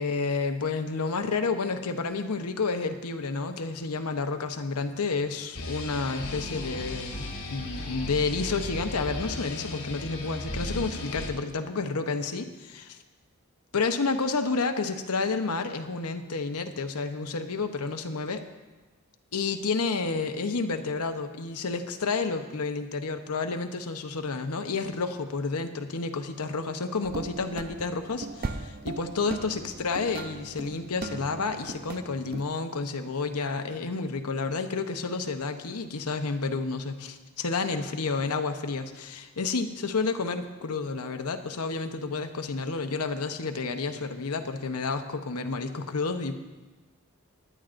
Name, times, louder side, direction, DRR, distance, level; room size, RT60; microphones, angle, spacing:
voice 1, 0.0-7.2 7.5-13.0 13.7-18.4 19.3-46.3, left 4 dB, 90° left, 7 dB, 0.9 m, -30 dB
sound 1, 5.5-11.3, left 1 dB, 70° left, 2.2 m, -35 dB
sound 2, 27.0-32.4, right 3 dB, 40° right, 0.6 m, -38 dB
19.0 x 11.0 x 2.6 m, 1.2 s
head